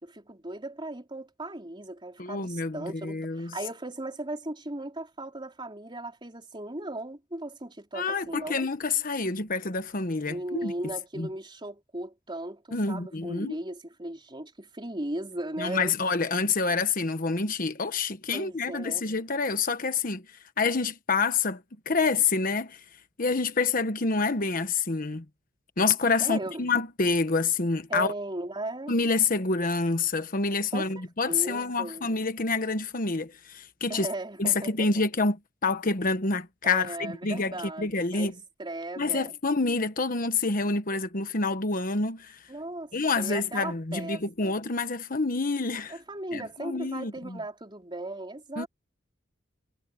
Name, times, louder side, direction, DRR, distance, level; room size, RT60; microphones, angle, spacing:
voice 1, 0.0-8.6 10.3-15.9 18.3-19.0 26.2-26.6 27.9-28.9 30.7-32.1 33.9-34.9 36.6-38.3 38.6-39.3 42.5-44.5 45.9-48.7, right 1 dB, 25° right, 4.0 m, -37 dB
voice 2, 2.2-3.5 7.9-10.7 11.2-11.3 12.7-13.5 15.6-20.2 20.6-21.6 21.9-22.8 23.2-25.2 25.8-28.1 28.9-34.1 34.4-38.3 39.0-42.4 42.9-46.0 46.3-47.4 48.6-48.7, left 4 dB, 50° left, 1.2 m, -27 dB
head